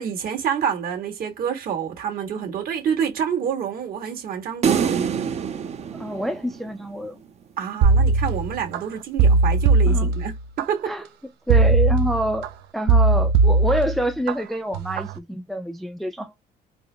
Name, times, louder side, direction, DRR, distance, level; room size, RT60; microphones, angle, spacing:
voice 1, 0.0-5.2 7.6-10.9, right 8 dB, 60° right, 1.7 m, -27 dB
sound 1, 4.6-7.0, right 7 dB, 40° right, 0.7 m, -25 dB
voice 2, 5.9-7.2 9.9-10.1 10.9-11.0 11.5-16.5, right 1 dB, ahead, 0.4 m, -27 dB
sound 2, 7.8-8.8 9.2-10.6 11.5-12.5 12.9-14.3 14.7-15.1, right 3 dB, 75° right, 0.6 m, -18 dB
4.2 x 2.1 x 3.3 m
cardioid pair, 110°, 17 cm